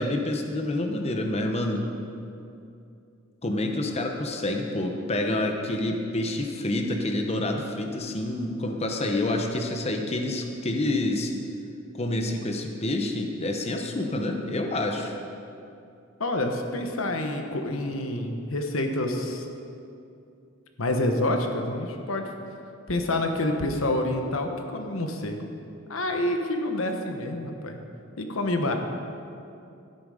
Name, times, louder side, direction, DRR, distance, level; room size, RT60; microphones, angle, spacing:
voice 1, 0.0-1.8 3.4-11.3 11.9-15.2, left 1 dB, 30° left, 3 dB, 0.9 m, -28 dB
voice 2, 16.2-19.5 20.8-22.3 22.9-25.5 25.9-27.8 28.2-28.8, left 1 dB, 90° left, 4 dB, 1.1 m, -27 dB
12.5 x 10.5 x 5.0 m, 2.6 s
head